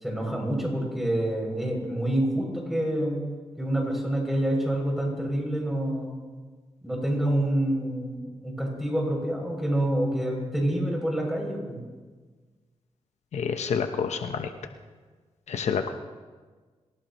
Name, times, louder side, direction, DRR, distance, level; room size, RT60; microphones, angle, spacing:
voice 1, 0.0-3.2 3.6-6.1 6.8-11.8, right 1 dB, ahead, -2 dB, 7.0 m, -27 dB
voice 2, 13.3-14.5 15.5-15.9, left 6 dB, 80° left, 7 dB, 1.0 m, -28 dB
26.0 x 17.5 x 3.1 m, 1.4 s
cardioid pair, 85°, 11 cm